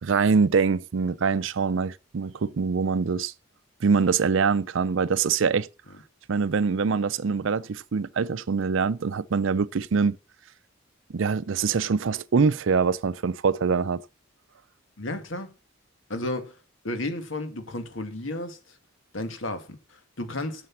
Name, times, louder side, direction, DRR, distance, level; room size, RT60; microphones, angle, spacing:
voice 1, 0.0-3.3 3.8-5.7 6.3-10.2 11.1-14.0, right 5 dB, 70° right, 0.5 m, -24 dB
voice 2, 15.0-15.5 16.1-16.6 16.8-18.8 19.1-20.7, left 1 dB, 70° left, 1.9 m, -33 dB
7.7 x 6.8 x 7.0 m
head